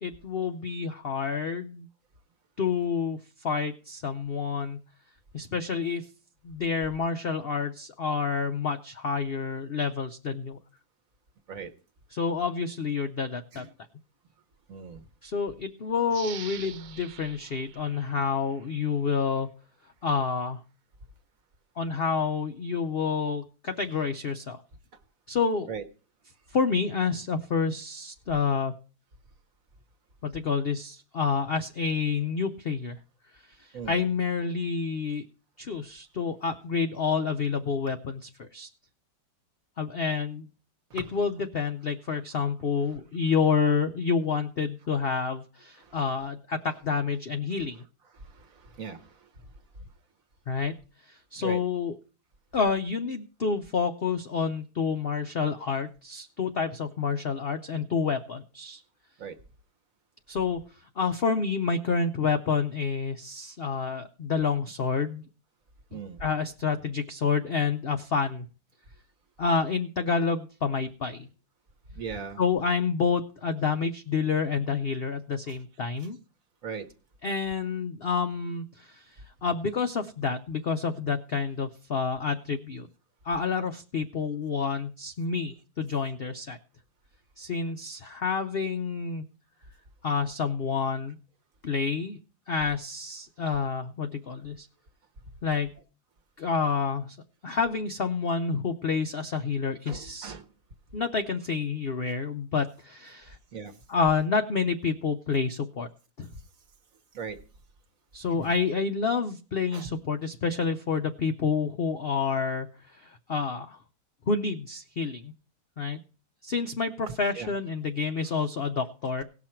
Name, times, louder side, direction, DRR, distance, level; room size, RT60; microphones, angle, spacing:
voice 1, 0.0-1.9 2.6-4.8 5.3-6.1 6.4-10.6 12.1-13.7 15.2-19.5 20.0-20.6 21.8-24.6 25.3-25.7 26.5-28.7 30.2-33.0 33.6-35.3 35.6-38.7 39.8-40.5 40.9-47.8 50.5-50.7 51.1-51.9 52.5-58.8 60.3-60.6 61.0-65.2 66.2-68.5 69.4-71.3 72.4-76.2 77.2-79.0 79.4-82.9 83.2-86.6 87.4-89.3 90.0-91.2 91.6-92.2 92.5-94.7 95.4-95.7 96.4-97.2 97.4-100.3 100.9-103.4 103.9-105.9 106.2-106.3 108.1-113.8 114.3-115.3 115.8-116.0 116.4-119.2, left 5 dB, 65° left, 7 dB, 0.5 m, -28 dB
voice 2, 14.7-15.1 25.7-25.8 33.7-34.1 40.9-41.1 45.8-46.0 48.1-49.3 51.4-51.6 59.2-59.4 65.9-66.3 71.9-72.4 75.5-75.6 76.6-76.9 97.5-97.6 99.9-100.5 103.5-103.8 106.3-106.4 107.1-107.4 108.3-108.6 109.7-109.9 117.1-117.5, right 6 dB, 55° right, 9 dB, 1.3 m, -39 dB
sound 1, 16.1-18.8 19.2-19.3, right 9 dB, 80° right, 1.5 m, -45 dB
18.0 x 6.1 x 4.4 m, 0.37 s
omnidirectional pair, 1.9 m